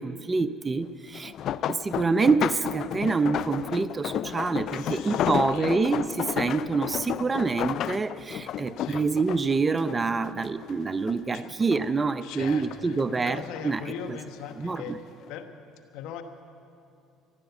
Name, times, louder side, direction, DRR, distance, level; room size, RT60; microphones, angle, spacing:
voice 1, 0.0-1.3 1.7-13.8 14.6-15.0, right 4 dB, 25° right, 13 dB, 0.6 m, -26 dB
sound 1, 1.1-10.7 11.1-12.0 12.4-13.8 14.5-14.8 15.2-15.3, left 11 dB, 60° left, 0.3 m, -32 dB
voice 2, 4.7-5.8 8.8-9.0 11.3-11.5 12.2-15.0 15.3-15.5 15.9-16.2, left 7 dB, 75° left, 7 dB, 1.2 m, -40 dB
15.0 x 12.0 x 8.1 m, 2.6 s
supercardioid pair, 90°, 0 cm